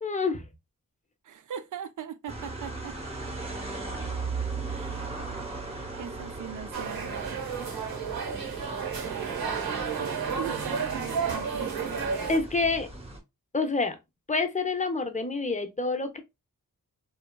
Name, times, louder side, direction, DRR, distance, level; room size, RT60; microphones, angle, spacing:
voice 1, 0.0-0.5 12.3-12.9 13.5-14.0 14.3-16.2, left 3 dB, 20° left, 0.6 m, -27 dB
voice 2, 1.2-2.9 4.7-5.1 5.9-7.2 10.0-12.0, right 8 dB, 60° right, 0.5 m, -40 dB
sound 1, 2.3-13.2, right 3 dB, 15° right, 0.8 m, -38 dB
sound 2, 6.7-12.4, right 6 dB, 90° right, 0.9 m, -32 dB
2.8 x 2.3 x 2.2 m
cardioid pair, 60°, 35 cm